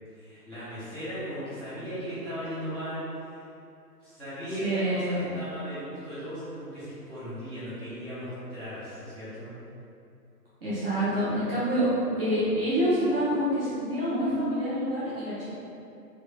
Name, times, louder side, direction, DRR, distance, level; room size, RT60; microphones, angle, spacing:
voice 1, 0.1-3.4 4.0-9.6, equal, ahead, -21 dB, 1.0 m, -37 dB
voice 2, 4.6-5.3 10.6-11.9 12.2-15.5, equal, 35° right, -12 dB, 0.8 m, -27 dB
3.5 x 3.0 x 2.2 m, 2.6 s
hypercardioid pair, 145°, 49 cm